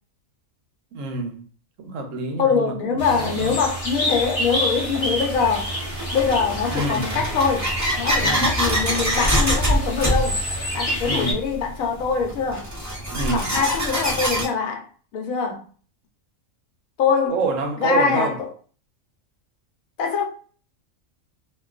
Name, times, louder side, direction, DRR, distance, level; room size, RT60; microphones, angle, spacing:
voice 1, 0.9-1.4 1.8-3.5 6.7-7.0 8.2-8.5 11.0-11.4 13.1-13.4 17.3-18.4, right 3 dB, 75° right, 0.9 m, -27 dB
voice 2, 2.4-5.7 6.1-7.7 8.0-10.4 10.7-12.6 13.3-14.9 15.1-15.6 17.0-17.3 17.8-18.5 20.0-20.2, left 5 dB, 85° left, 1.1 m, -23 dB
sound 1, 3.0-11.3, equal, 30° left, 0.8 m, -28 dB
sound 2, 4.1-4.2 5.0-14.5, equal, 20° right, 0.4 m, -25 dB
2.5 x 2.3 x 2.3 m
omnidirectional pair, 1.4 m